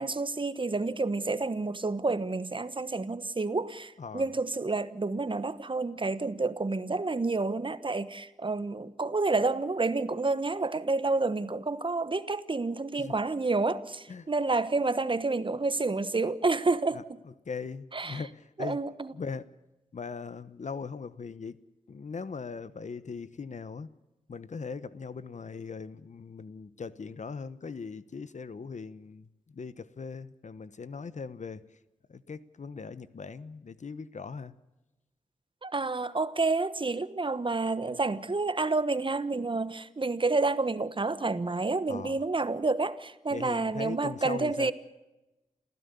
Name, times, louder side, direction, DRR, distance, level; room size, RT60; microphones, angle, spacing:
voice 1, 0.0-17.2 17.9-18.2 18.6-19.1 35.6-44.7, right 3 dB, 40° right, 1.2 m, -29 dB
voice 2, 4.0-4.3 13.0-13.1 14.1-14.3 16.9-18.8 19.1-19.4 19.9-21.6 21.9-23.9 24.3-31.6 32.1-34.5 41.9-42.2 43.3-44.7, left 5 dB, 65° left, 1.1 m, -40 dB
28.0 x 15.5 x 6.9 m
cardioid pair, 55°, 13 cm